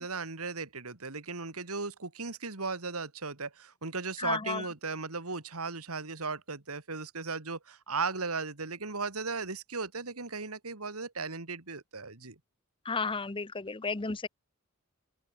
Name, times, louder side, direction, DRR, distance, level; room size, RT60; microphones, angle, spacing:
voice 1, 0.0-12.4, right 4 dB, 90° right, 2.5 m, -36 dB
voice 2, 4.2-4.7 12.9-14.3, left 4 dB, 25° left, 0.7 m, -33 dB
open air
head